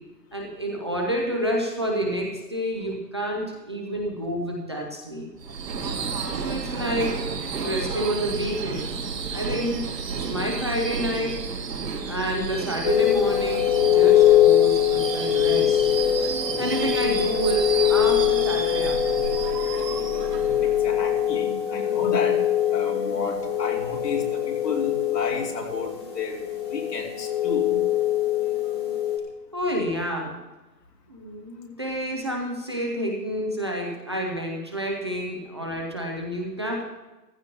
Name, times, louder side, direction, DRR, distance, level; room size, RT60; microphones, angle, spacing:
voice 1, 0.3-5.3 6.4-7.2 7.6-9.0 9.3-9.9 10.2-11.4 12.1-15.9 16.6-19.3 29.5-30.4 31.1-36.8, equal, 15° right, -1 dB, 0.5 m, -29 dB
Subway metro underground / Screech, 5.4-21.3, right 5 dB, 75° right, 1.8 m, -31 dB
sound 1, 12.8-29.2, left 11 dB, 15° left, 0.8 m, -23 dB
voice 2, 20.6-26.4 26.7-27.8, left 4 dB, 75° left, 0 dB, 2.9 m, -32 dB
15.0 x 14.0 x 2.8 m, 1.1 s
hypercardioid pair, 155°, 49 cm